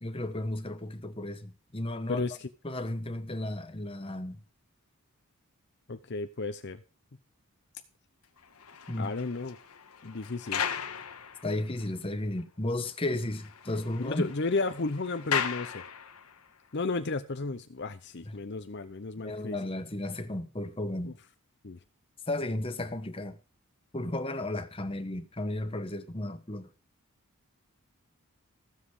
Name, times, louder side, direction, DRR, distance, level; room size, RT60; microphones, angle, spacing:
voice 1, 0.0-2.3 2.6-4.4 8.9-9.1 11.4-14.3 18.3-18.4 19.2-21.2 22.3-23.4 23.9-26.7, left 1 dB, 25° left, 1.2 m, -34 dB
voice 2, 5.9-6.8 9.0-9.6 10.0-10.6 14.0-15.9 16.7-19.6 21.0-21.1 21.6-21.8, left 3 dB, 50° left, 0.7 m, -33 dB
sound 1, 8.4-11.9 12.4-12.5 12.8-12.9 13.2-16.5, left 8 dB, 85° left, 1.4 m, -37 dB
15.5 x 7.5 x 4.9 m
head